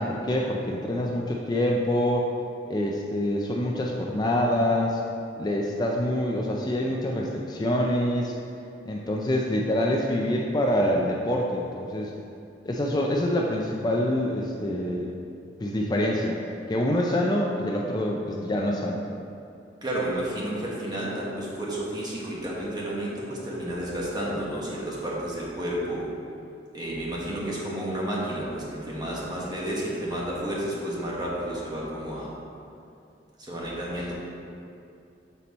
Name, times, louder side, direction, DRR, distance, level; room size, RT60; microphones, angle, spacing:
voice 1, 0.0-2.3 2.7-5.0 5.4-8.3 8.9-12.1 12.6-15.1 15.6-16.4 16.7-19.0, left 1 dB, 25° left, -1 dB, 0.4 m, -26 dB
voice 2, 19.8-26.1 26.7-32.3 33.4-34.1, right 1 dB, 25° right, -5 dB, 1.2 m, -31 dB
6.8 x 4.3 x 4.1 m, 2.5 s
head